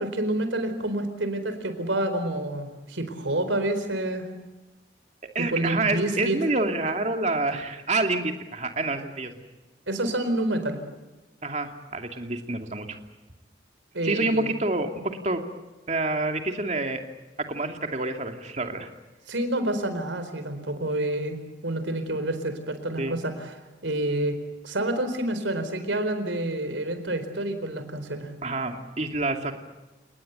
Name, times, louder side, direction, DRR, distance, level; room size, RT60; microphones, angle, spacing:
voice 1, 0.0-4.3 5.4-6.4 9.9-10.8 13.9-14.5 19.3-23.5 23.8-24.4 24.6-28.3, right 1 dB, 90° right, 9 dB, 4.3 m, -28 dB
voice 2, 5.3-9.3 11.4-13.0 14.0-15.4 15.9-17.0 17.5-18.9 23.0-23.2 28.4-29.6, right 2 dB, 40° right, 4 dB, 2.6 m, -27 dB
29.5 x 19.5 x 8.1 m, 1.1 s
head